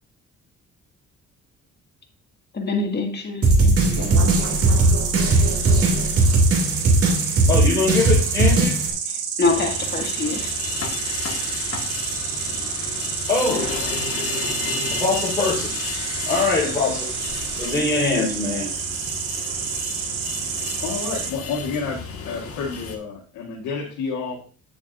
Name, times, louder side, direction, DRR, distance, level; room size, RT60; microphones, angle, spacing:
voice 1, 2.5-3.5 9.4-10.6, left 3 dB, 35° left, 2.0 m, -24 dB
sound 1, 3.4-8.9, right 2 dB, 50° right, 2.1 m, -18 dB
Insect, 4.1-21.3, right 7 dB, 90° right, 1.0 m, -29 dB
voice 2, 7.5-8.8 13.3-13.8 14.9-15.8 16.2-17.1 17.6-18.7, left 3 dB, 15° left, 3.9 m, -23 dB
sound 2, 9.4-23.0, left 4 dB, 50° left, 1.8 m, -32 dB
voice 3, 20.8-24.4, left 5 dB, 85° left, 1.7 m, -30 dB
9.3 x 7.2 x 2.6 m
cardioid pair, 90°, 30 cm